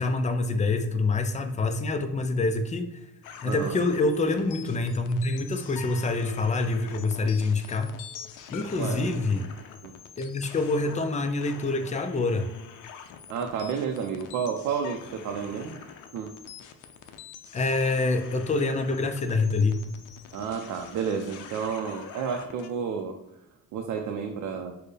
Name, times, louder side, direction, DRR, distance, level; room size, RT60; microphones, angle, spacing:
voice 1, 0.0-3.0 3.4-7.9 8.5-9.5 10.2-12.5 17.5-19.8, left 3 dB, 25° left, 7 dB, 0.4 m, -26 dB
sound 1, 3.2-22.7, left 7 dB, 85° left, 0.5 m, -45 dB
voice 2, 3.4-3.8 8.8-9.1 9.8-9.9 13.3-15.8 16.1-16.3 20.3-23.1 23.7-24.7, right 6 dB, 80° right, 3 dB, 0.5 m, -31 dB
4.3 x 2.1 x 3.2 m, 0.88 s
cardioid pair, 90°, 30 cm